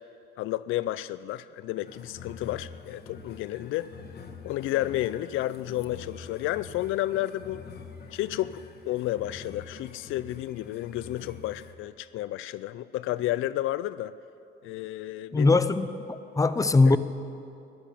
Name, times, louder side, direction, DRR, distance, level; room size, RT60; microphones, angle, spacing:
voice 1, 0.4-3.9 4.4-7.6 8.1-14.2 14.6-15.5, left 14 dB, 85° left, 15 dB, 0.4 m, -31 dB
sound 1, 1.8-11.7, left 5 dB, 55° left, 1.3 m, -46 dB
voice 2, 15.3-17.0, left 3 dB, 15° left, 11 dB, 0.6 m, -21 dB
14.5 x 10.5 x 8.5 m, 2.7 s
cardioid pair, 90°, 20 cm